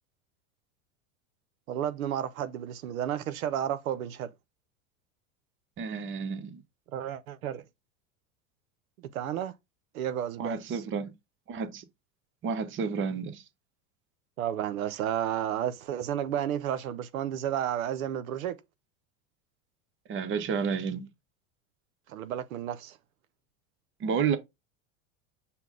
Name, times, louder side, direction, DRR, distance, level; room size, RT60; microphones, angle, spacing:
voice 1, 1.7-4.3 6.9-7.6 9.1-9.5 9.9-10.8 14.4-18.6 22.1-23.0, right 10 dB, 85° right, 0.6 m, -32 dB
voice 2, 5.8-6.6 10.4-11.1 11.5-11.8 12.4-13.4 20.1-21.1 24.0-24.4, right 6 dB, 30° right, 0.7 m, -31 dB
5.7 x 2.1 x 3.6 m
hypercardioid pair, 95°, 41 cm